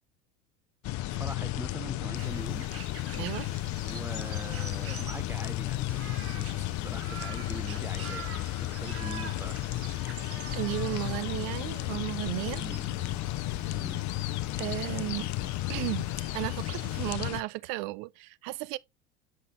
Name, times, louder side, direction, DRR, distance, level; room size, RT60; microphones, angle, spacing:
sound 1, 0.8-17.4, left 16 dB, 45° left, 0.7 m, -33 dB
voice 1, 1.1-2.7 3.8-8.3 8.6-9.6 12.6-13.1 13.7-14.0, right 2 dB, 5° right, 0.4 m, -43 dB
sound 2, 2.1-17.1, right 7 dB, 35° right, 1.5 m, -47 dB
voice 2, 3.1-3.5 10.5-12.6 14.6-15.3 15.7-18.8, right 21 dB, 55° right, 0.6 m, -34 dB
8.3 x 6.1 x 3.0 m
hypercardioid pair, 90°, 43 cm